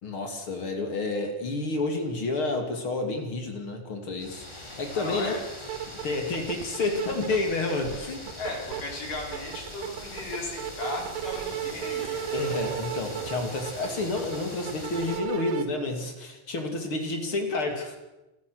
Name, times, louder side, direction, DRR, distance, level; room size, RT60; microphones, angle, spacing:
voice 1, 0.0-5.4 5.9-8.3 12.3-18.1, left 2 dB, 40° left, 4 dB, 3.2 m, -30 dB
sound 1, 4.2-15.2, left 1 dB, 10° left, 2.7 m, -42 dB
voice 2, 4.9-5.4 8.4-12.3, left 2 dB, 70° left, 0 dB, 5.6 m, -36 dB
sound 2, 5.3-5.4 5.6-7.5 7.8-8.8 9.2-15.6, right 11 dB, 90° right, 3.0 m, -34 dB
27.5 x 14.5 x 6.5 m, 1.0 s
omnidirectional pair, 3.9 m